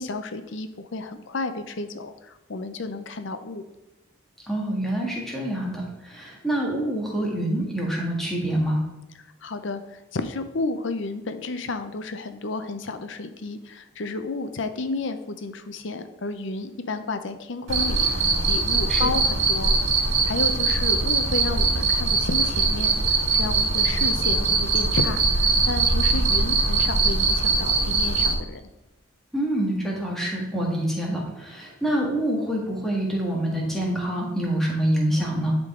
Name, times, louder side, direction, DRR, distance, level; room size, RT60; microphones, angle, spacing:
voice 1, 0.0-3.7 9.4-9.8 10.1-19.7 20.2-28.6, left 3 dB, 60° left, 9 dB, 0.6 m, -31 dB
voice 2, 4.5-8.8 18.9-19.1 29.3-35.5, right 1 dB, ahead, -3 dB, 1.6 m, -26 dB
Cricket, 17.7-28.3, right 3 dB, 70° right, 1.6 m, -22 dB
10.5 x 3.8 x 3.7 m, 0.96 s
head